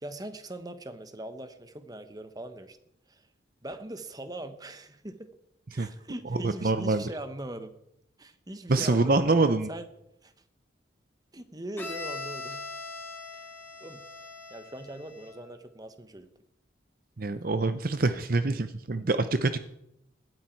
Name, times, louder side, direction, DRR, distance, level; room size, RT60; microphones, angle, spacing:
voice 1, 0.0-2.8 3.1-3.2 3.6-5.3 5.7-7.7 8.2-9.9 10.2-10.3 11.3-12.6 13.3-13.5 13.8-14.0 14.5-16.3, right 1 dB, 20° right, 10 dB, 1.1 m, -41 dB
voice 2, 6.3-7.0 8.7-9.7 17.2-19.6, right 3 dB, 50° right, 11 dB, 0.7 m, -25 dB
Bowed string instrument, 11.8-15.5, left 3 dB, 10° left, 2.8 m, -41 dB
17.0 x 12.5 x 4.6 m, 0.79 s
head